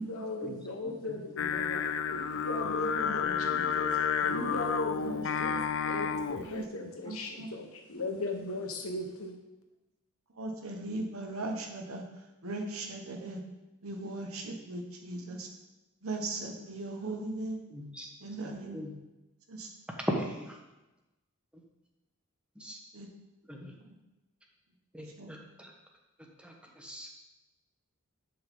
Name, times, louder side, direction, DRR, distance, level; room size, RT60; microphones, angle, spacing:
voice 1, 0.0-1.8 2.1-3.9 4.2-5.6 5.8-9.4, left 2 dB, 85° left, 3 dB, 1.4 m, -38 dB
voice 2, 0.8-1.5 17.7-18.1 18.4-19.0 19.9-20.6 21.5-21.6 22.5-22.8 23.5-23.7 24.9-25.7 26.2-27.2, equal, 5° right, 1 dB, 1.2 m, -39 dB
Singing, 1.4-6.5, left 7 dB, 65° left, 0.5 m, -31 dB
voice 3, 5.0-5.6 6.5-6.6 7.0-7.5 10.4-12.0 12.4-13.4 13.8-15.5 16.0-17.6 18.2-18.8 19.5-19.7 22.9-23.1 25.2-25.3, right 2 dB, 80° right, 3 dB, 1.3 m, -38 dB
11.0 x 5.6 x 3.8 m, 1.0 s
head